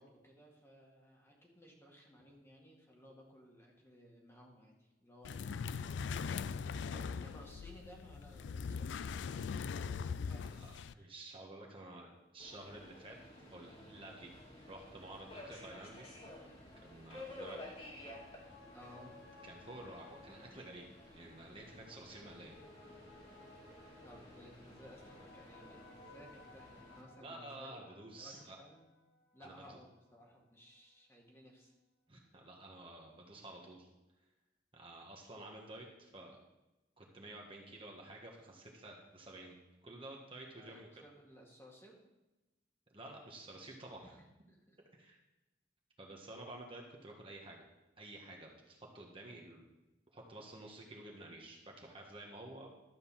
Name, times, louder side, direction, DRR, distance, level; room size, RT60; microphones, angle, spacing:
voice 1, 0.0-9.7 10.2-11.1 18.7-19.2 24.0-28.8 29.3-31.8 40.5-42.0 44.0-44.8, equal, 15° left, -1 dB, 2.0 m, -59 dB
sound 1, 5.3-10.9, left 5 dB, 80° left, 0.3 m, -40 dB
voice 2, 10.5-13.2 13.5-14.3 14.6-16.1 16.8-17.6 19.4-22.6 27.2-28.6 29.4-29.8 32.1-33.9 34.7-36.4 37.0-39.6 39.8-40.9 42.9-44.1 44.9-45.2 46.0-47.6 48.0-49.6 50.1-52.7, right 2 dB, 30° right, -1 dB, 1.5 m, -51 dB
Subway metro underground, 12.4-27.0, left 1 dB, 35° left, 2.5 m, -53 dB
sound 2, 17.5-30.3 30.7-30.8, left 3 dB, 65° left, 1.2 m, -61 dB
12.0 x 5.3 x 7.3 m, 1.0 s
head